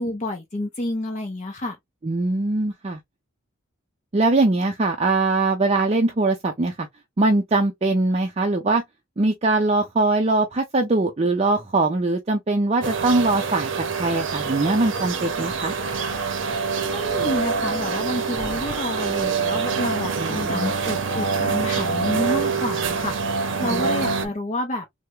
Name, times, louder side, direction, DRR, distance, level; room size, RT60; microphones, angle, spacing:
voice 1, 0.0-1.8 16.8-24.8, left 1 dB, 35° left, 0.6 m, -29 dB
voice 2, 2.0-3.0 4.1-6.9 7.2-8.8 9.2-15.7 20.2-20.7 23.7-23.9, right 2 dB, 30° right, 0.4 m, -22 dB
sound 1, 12.8-24.3, right 5 dB, 65° right, 0.6 m, -25 dB
3.3 x 2.1 x 3.0 m
head